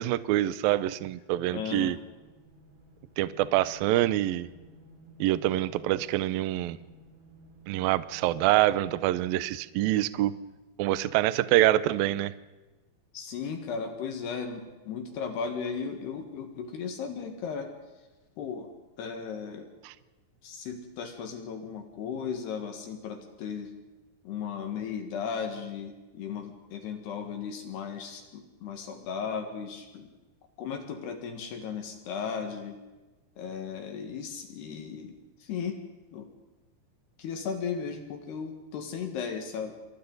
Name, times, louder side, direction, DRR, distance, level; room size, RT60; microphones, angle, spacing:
voice 1, 0.0-2.0 3.2-4.5 5.2-6.8 7.7-10.3 10.8-12.3 19.8-19.9, right 15 dB, 90° right, 15 dB, 2.0 m, -25 dB
voice 2, 1.5-2.0 13.1-17.7 18.4-18.7 19.0-19.7 20.4-23.7 24.3-30.1 30.6-32.8 33.4-35.2 35.4-35.8 36.1-36.3 37.2-39.8, left 6 dB, 70° left, 5 dB, 3.5 m, -36 dB
sound 1, 1.9-9.6, equal, 60° right, 6.4 m, -55 dB
28.0 x 24.5 x 4.0 m, 1.2 s
omnidirectional pair, 5.2 m